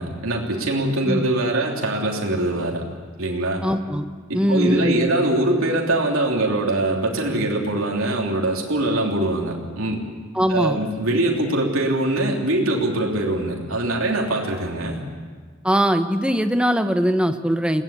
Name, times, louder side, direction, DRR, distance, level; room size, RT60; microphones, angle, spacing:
voice 1, 0.0-2.8 3.2-3.6 4.3-10.0 10.5-15.0, right 1 dB, 80° right, -1 dB, 3.2 m, -23 dB
voice 2, 3.6-4.0 4.3-5.1 10.3-10.8 15.6-17.8, equal, 5° right, 7 dB, 1.0 m, -21 dB
22.0 x 18.0 x 8.8 m, 1.5 s
head